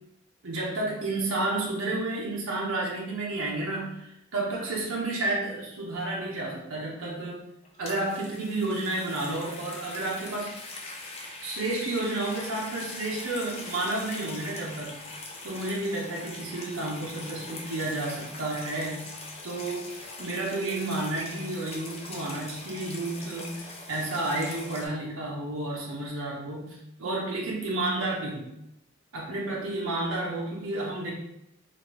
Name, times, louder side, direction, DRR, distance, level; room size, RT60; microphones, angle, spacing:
voice 1, 0.4-7.4 7.8-10.5 11.4-15.0 15.4-19.1 19.4-19.9 20.2-28.5 29.1-31.1, right 2 dB, 70° right, -3 dB, 0.7 m, -31 dB
sound 1, 7.6-24.9, left 2 dB, 25° left, 0.3 m, -42 dB
3.0 x 2.5 x 3.0 m, 0.85 s
head